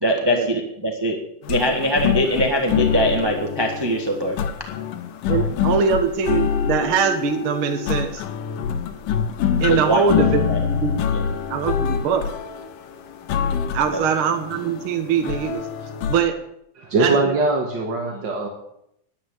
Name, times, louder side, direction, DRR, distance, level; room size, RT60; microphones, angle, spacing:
voice 1, 0.0-1.2 1.5-4.4 9.7-10.6 13.9-14.0, equal, 25° right, 2 dB, 0.5 m, -22 dB
sound 1, 1.4-16.2, left 7 dB, 90° left, 2.7 m, -25 dB
voice 2, 5.3-8.2 9.6-11.0 11.5-12.4 13.7-15.6 16.1-16.4 17.0-17.4 18.1-18.2, right 6 dB, 55° right, 5 dB, 1.6 m, -22 dB
voice 3, 16.8-18.5, right 3 dB, 40° right, 0 dB, 1.9 m, -21 dB
10.5 x 10.0 x 9.0 m, 0.76 s
omnidirectional pair, 3.7 m